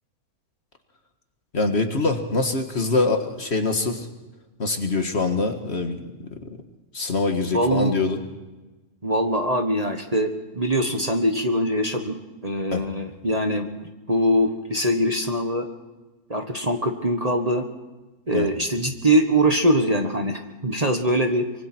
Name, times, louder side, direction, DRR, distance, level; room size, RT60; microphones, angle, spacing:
voice 1, 1.5-4.1 4.6-6.3 6.9-8.2 12.7-12.8 18.3-18.5, left 3 dB, 45° left, 6 dB, 1.9 m, -24 dB
voice 2, 7.5-7.9 9.0-15.6 16.3-17.7 18.3-21.4, equal, 25° right, 5 dB, 1.5 m, -23 dB
25.0 x 23.5 x 4.6 m, 1.2 s
omnidirectional pair, 1.6 m